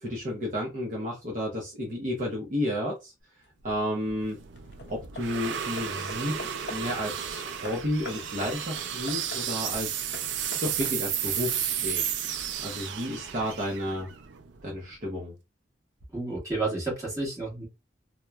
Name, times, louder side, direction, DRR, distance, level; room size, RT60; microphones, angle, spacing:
voice 1, 0.0-3.1 3.6-4.4 4.9-10.0 10.6-12.0 12.6-14.1 14.6-15.3, equal, 45° right, 0.7 m, -32 dB
Hammer / Wood, 3.4-3.9 4.6-7.0 7.6-11.3, left 3 dB, 70° left, 0.4 m, -44 dB
sound 1, 3.7-14.9, right 9 dB, 90° right, 0.4 m, -33 dB
voice 2, 16.1-17.7, right 3 dB, 20° right, 1.4 m, -31 dB
2.9 x 2.1 x 2.2 m
head